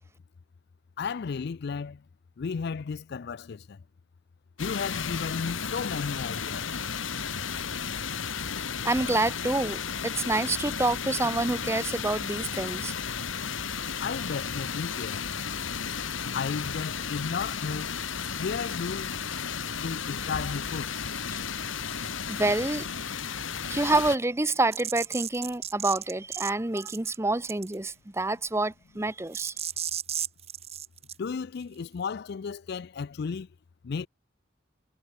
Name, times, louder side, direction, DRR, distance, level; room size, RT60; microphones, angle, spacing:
voice 1, 1.0-2.0 2.4-3.8 4.6-6.8 14.0-15.3 16.3-18.0 18.4-19.1 19.8-20.9 31.2-33.5 33.8-34.1, left 5 dB, 55° left, 0.4 m, -34 dB
sound 1, 4.6-24.2, left 6 dB, 75° left, 1.9 m, -33 dB
voice 2, 8.8-12.9 22.0-22.9 23.6-29.5, right 2 dB, 15° right, 0.7 m, -27 dB
sound 2, 24.7-26.5 26.8-27.2 27.5-27.9 29.3-31.1, right 10 dB, 30° right, 1.5 m, -34 dB
head